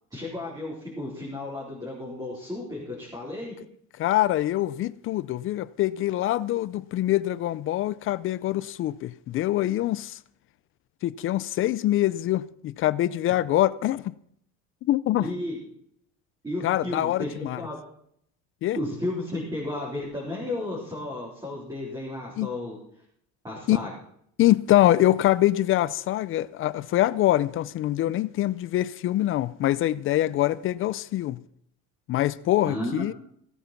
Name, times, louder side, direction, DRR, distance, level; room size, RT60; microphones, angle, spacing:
voice 1, 0.1-3.5 15.2-15.6 16.4-17.8 18.8-22.8 23.4-23.9 32.7-33.1, left 1 dB, 10° right, 4.0 m, -33 dB
voice 2, 4.0-10.2 11.0-14.1 14.9-15.3 16.6-17.6 18.6-18.8 22.4-22.5 23.7-23.8 24.4-31.4 32.1-33.1, left 14 dB, 40° left, 0.4 m, -24 dB
16.0 x 9.0 x 5.9 m
cardioid pair, 160°, 33 cm